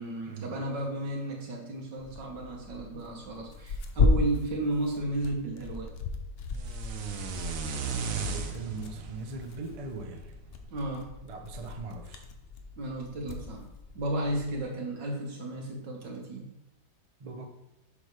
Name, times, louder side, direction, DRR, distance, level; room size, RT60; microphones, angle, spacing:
voice 1, 0.0-5.9 10.7-11.1 12.8-13.7 13.9-16.5, right 2 dB, 85° right, 0 dB, 2.1 m, -33 dB
Tearing, 2.0-14.6, left 3 dB, 55° left, 0.6 m, -35 dB
sound 1, 6.6-10.7, right 5 dB, 60° right, 1.0 m, -36 dB
voice 2, 8.1-10.3 11.2-12.3 17.2-17.5, right 3 dB, 40° right, 4 dB, 0.5 m, -40 dB
8.0 x 6.1 x 3.3 m, 0.91 s
omnidirectional pair, 1.9 m